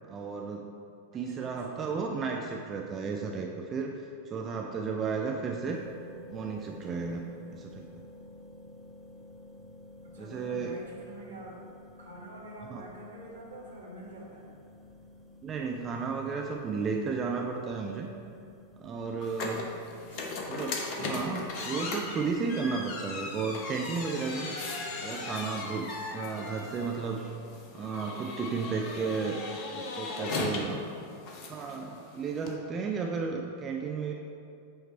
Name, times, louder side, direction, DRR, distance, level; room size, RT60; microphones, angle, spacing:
voice 1, 0.1-0.7 1.1-3.9 4.3-5.8 6.3-7.3 7.5-8.0 10.2-10.8 12.7-12.8 15.4-18.1 18.8-19.7 20.5-24.6 25.0-27.3 27.7-29.4 29.8-30.8 31.5-34.1, right 5 dB, 25° right, 1 dB, 0.4 m, -33 dB
voice 2, 1.3-2.0 10.0-11.6 12.0-14.6 19.9-20.7 30.4-31.2, right 1 dB, 70° right, -3 dB, 1.3 m, -47 dB
sound 1, 5.6-22.5, left 1 dB, 5° left, 0.9 m, -52 dB
sound 2, 19.2-32.5, left 3 dB, 40° left, 0.8 m, -38 dB
7.8 x 3.2 x 4.4 m, 2.5 s
figure-of-eight pair, 90°, 0 cm